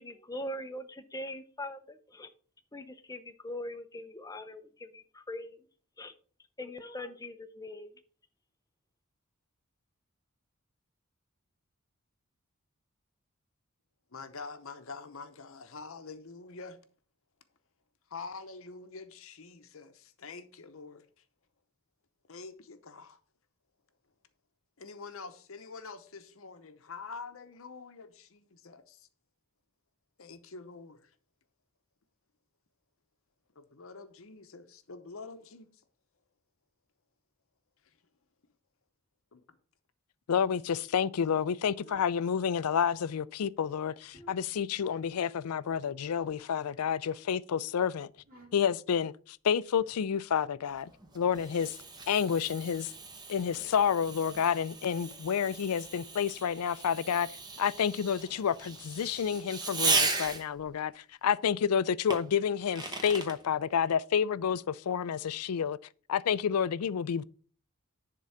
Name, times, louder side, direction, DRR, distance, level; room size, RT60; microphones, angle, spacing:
voice 1, 0.0-2.3 2.7-5.6 6.0-6.1 6.6-7.9, left 1 dB, 15° left, 0.6 m, -41 dB
voice 2, 14.1-16.8 18.1-21.2 22.3-23.2 24.8-29.1 30.2-31.1 33.5-35.8 37.8-38.0 39.3-39.6, left 4 dB, 65° left, 0.8 m, -46 dB
voice 3, 40.3-48.1 48.5-51.8 52.1-52.9 53.3-57.3 57.6-65.8 66.1-67.2, left 7 dB, 85° left, 0.4 m, -29 dB
sound 1, 41.7-42.2 43.8-44.6 46.3-47.2 48.2-48.8 49.7-50.1 51.3-51.4, right 1 dB, 40° right, 2.3 m, -56 dB
Fireworks, 50.7-60.7 62.1-63.4, right 3 dB, 20° right, 1.0 m, -36 dB
10.5 x 3.8 x 5.6 m
head